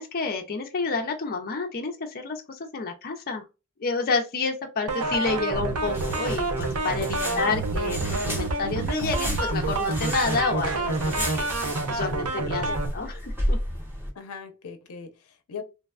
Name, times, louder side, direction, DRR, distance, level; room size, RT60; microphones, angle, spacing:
voice 1, 0.0-3.4 3.8-12.7 12.9-13.6, left 4 dB, 45° left, 0.5 m, -29 dB
sound 1, 4.9-12.9, right 3 dB, 90° right, 0.6 m, -28 dB
sound 2, 5.5-14.1, equal, 10° right, 0.8 m, -33 dB
voice 2, 7.2-7.7 12.6-12.8 14.1-15.6, left 5 dB, 85° left, 0.6 m, -39 dB
3.3 x 2.2 x 2.3 m
head